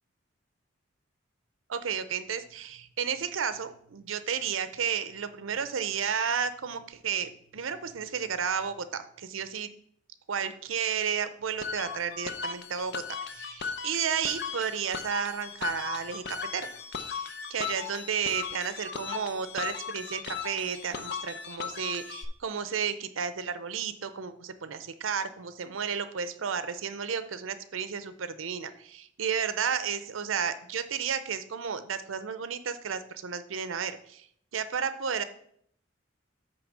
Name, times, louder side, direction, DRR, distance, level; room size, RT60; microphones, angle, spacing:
voice 1, 1.7-9.7 10.3-16.7 17.0-34.3 34.5-35.2, right 7 dB, 85° right, 11 dB, 0.6 m, -32 dB
sound 1, 11.6-22.2, left 6 dB, 55° left, 0.7 m, -37 dB
8.7 x 3.3 x 6.2 m, 0.66 s
head